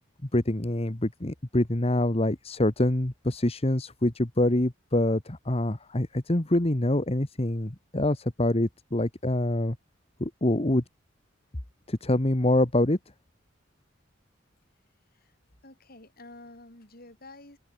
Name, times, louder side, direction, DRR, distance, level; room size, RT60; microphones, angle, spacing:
voice 1, 0.3-9.8 10.2-10.8 11.9-13.0, left 1 dB, 30° left, 1.5 m, -25 dB
voice 2, 15.6-17.6, left 2 dB, 50° left, 6.4 m, -49 dB
open air
head